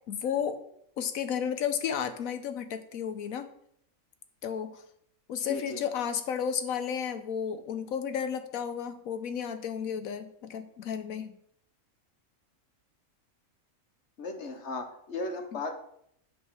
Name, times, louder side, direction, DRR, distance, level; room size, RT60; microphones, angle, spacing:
voice 1, 0.1-0.6 1.0-3.5 4.4-4.8 5.3-11.4, left 8 dB, 85° left, 10 dB, 1.3 m, -33 dB
voice 2, 5.5-5.8 14.2-15.8, left 2 dB, 60° left, 5 dB, 1.5 m, -36 dB
8.2 x 5.4 x 6.3 m, 0.71 s
omnidirectional pair, 1.4 m